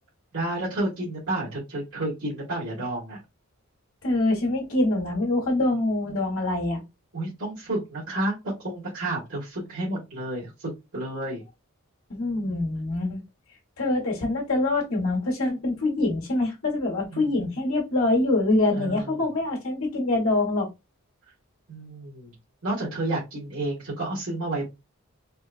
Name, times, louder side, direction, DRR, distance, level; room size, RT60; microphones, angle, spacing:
voice 1, 0.3-3.2 7.1-11.4 12.3-12.6 17.1-17.5 18.7-19.3 21.7-22.3 22.6-24.6, right 1 dB, 85° right, -9 dB, 1.6 m, -31 dB
voice 2, 4.0-6.8 12.1-13.2 13.8-20.7, left 2 dB, 80° left, -1 dB, 1.5 m, -25 dB
4.3 x 2.3 x 2.5 m, 0.24 s
head